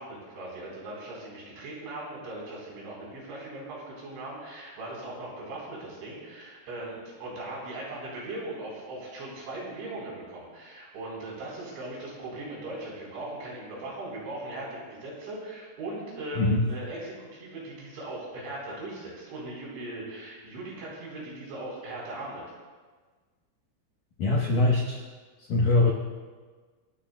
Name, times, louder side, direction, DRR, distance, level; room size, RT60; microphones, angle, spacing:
voice 1, 0.0-22.4, right 2 dB, 65° right, -4 dB, 6.6 m, -39 dB
voice 2, 24.2-25.0 25.5-25.9, left 2 dB, 85° left, -2 dB, 1.8 m, -22 dB
28.0 x 12.0 x 2.3 m, 1.4 s
omnidirectional pair, 5.9 m